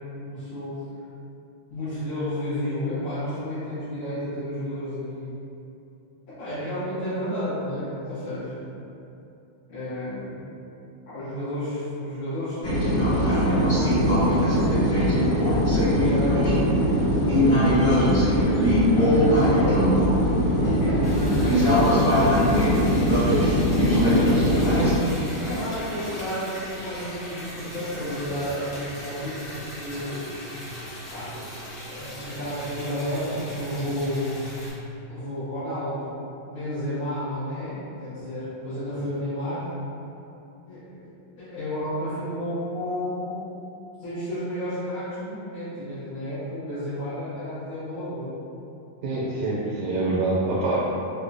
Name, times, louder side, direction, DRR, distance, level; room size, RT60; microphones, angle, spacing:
voice 1, 0.2-0.8 1.7-5.3 6.3-8.7 9.7-10.5 11.1-16.8 18.3-22.8 23.8-24.9 25.3-30.2 31.1-31.4 31.8-34.3 35.1-39.7 40.7-41.1 41.4-43.5 44.0-48.3, equal, 90° left, -18 dB, 2.5 m, -32 dB
sound 1, 12.6-24.9, equal, 75° left, 2.6 m, -20 dB
Liquid, 21.0-34.7, equal, 50° left, 1.4 m, -38 dB
voice 2, 49.0-50.8, right 2 dB, 90° right, -6 dB, 1.5 m, -25 dB
5.1 x 2.1 x 2.5 m, 2.8 s
omnidirectional pair, 2.3 m